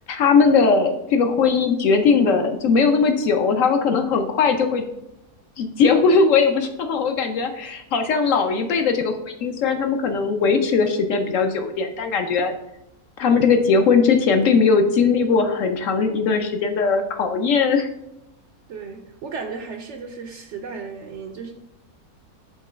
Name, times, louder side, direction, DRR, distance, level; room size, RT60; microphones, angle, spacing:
voice 1, 0.1-4.9 5.6-12.5 13.2-17.9, left 5 dB, 65° left, 6 dB, 0.9 m, -19 dB
voice 2, 18.7-21.5, right 5 dB, 65° right, 3 dB, 0.7 m, -34 dB
5.4 x 3.7 x 4.9 m, 0.84 s
omnidirectional pair, 1.6 m